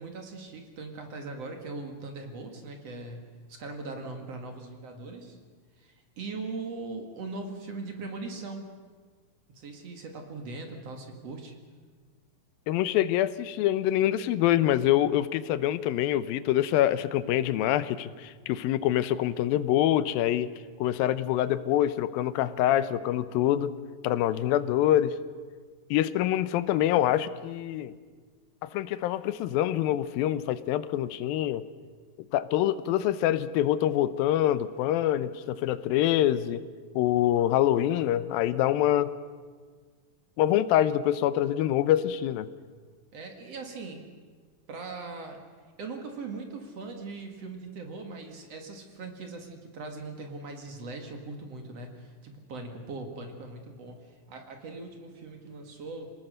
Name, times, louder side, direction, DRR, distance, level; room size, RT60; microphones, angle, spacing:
voice 1, 0.0-5.4 5.8-8.7 9.5-11.5 43.1-44.0 44.7-45.4 45.8-56.1, right 3 dB, 50° right, 4 dB, 2.7 m, -40 dB
voice 2, 12.7-20.5 20.8-23.7 24.0-25.2 25.9-27.9 28.6-31.6 32.3-36.6 37.0-39.1 40.4-42.5, left 12 dB, 85° left, 15 dB, 2.5 m, -25 dB
27.0 x 18.5 x 6.6 m, 1.6 s
omnidirectional pair, 4.1 m